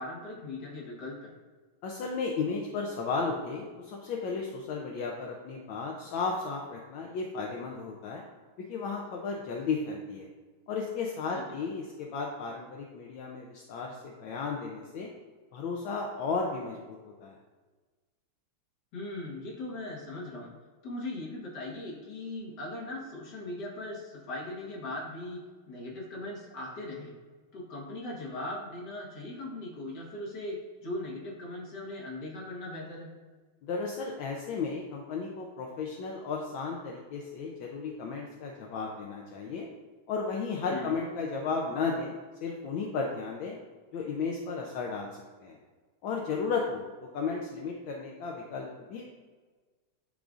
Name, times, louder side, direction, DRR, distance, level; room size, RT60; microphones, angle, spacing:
voice 1, 0.0-1.3 18.9-20.5 20.8-25.4 25.7-27.1 27.5-33.1 40.7-41.0, left 2 dB, 55° left, -4 dB, 2.0 m, -39 dB
voice 2, 1.8-8.2 8.6-10.3 10.7-15.1 15.5-17.4 33.6-39.7 40.1-42.1 42.4-43.5 43.9-45.1 45.4-45.6 46.0-49.0, left 4 dB, 75° left, 0 dB, 1.3 m, -34 dB
10.5 x 3.8 x 2.4 m, 1.4 s
omnidirectional pair, 2.3 m